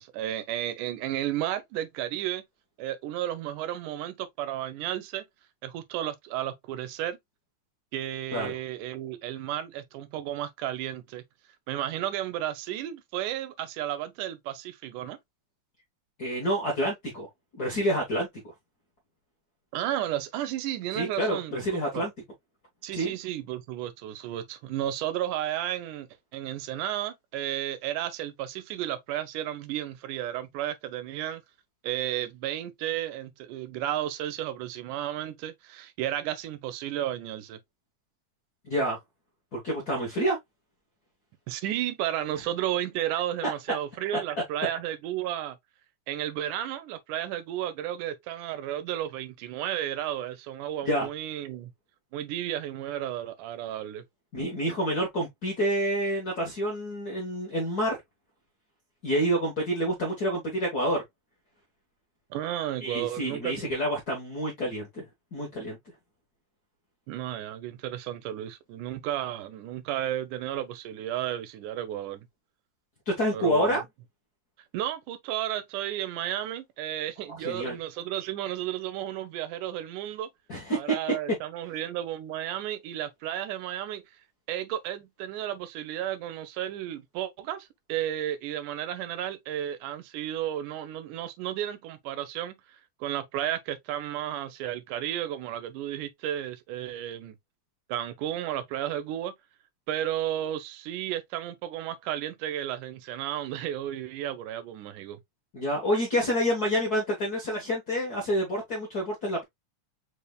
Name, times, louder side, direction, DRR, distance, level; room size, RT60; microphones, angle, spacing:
voice 1, 0.0-2.4 2.8-5.2 5.6-7.2 7.9-11.2 11.7-15.2 19.7-22.1 22.8-31.4 31.8-37.6 41.5-45.6 46.1-51.7 52.1-54.0 62.3-63.7 67.1-72.3 73.3-73.8 74.7-80.3 80.7-84.0 84.5-97.4 97.9-99.3 99.9-105.2, right 12 dB, 85° right, 2.2 m, -33 dB
voice 2, 16.2-17.3 17.5-18.3 20.9-22.1 22.9-23.1 38.6-39.0 39.5-40.4 50.8-51.1 54.3-58.0 59.0-61.0 62.8-65.1 65.3-65.8 73.1-73.8 77.4-77.7 80.5-80.9 105.5-109.4, equal, 55° left, 1.0 m, -28 dB
5.0 x 3.4 x 2.2 m
omnidirectional pair, 3.5 m